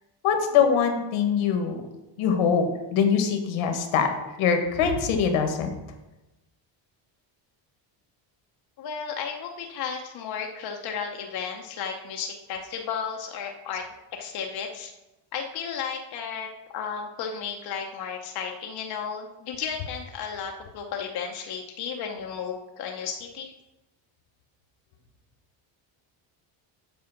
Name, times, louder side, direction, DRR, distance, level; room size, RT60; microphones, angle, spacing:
voice 1, 0.2-1.8 2.2-2.6 2.9-4.1 4.4-5.7, left 7 dB, 75° left, 6 dB, 1.4 m, -23 dB
voice 2, 8.8-13.8 14.2-14.9 15.3-16.5 16.7-23.5, left 7 dB, 50° left, 2 dB, 0.8 m, -33 dB
7.7 x 4.9 x 5.8 m, 1.0 s
cardioid pair, 150°, 49 cm